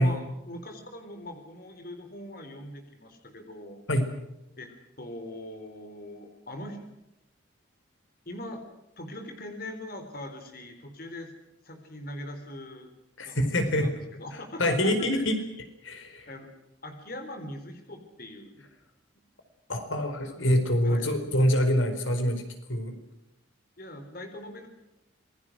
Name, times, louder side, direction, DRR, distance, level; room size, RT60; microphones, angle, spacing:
voice 1, 0.0-3.8 4.6-6.8 8.3-8.6 9.0-11.3 11.6-12.9 13.2-15.2 16.3-16.5 16.8-18.6 20.2-20.4 20.8-21.1 23.8-24.7, left 1 dB, 50° left, 6 dB, 3.9 m, -41 dB
voice 2, 13.2-13.9 14.6-15.4 15.8-16.3 19.7-23.0, equal, 90° left, 7 dB, 4.6 m, -25 dB
27.0 x 22.0 x 6.3 m, 0.91 s
head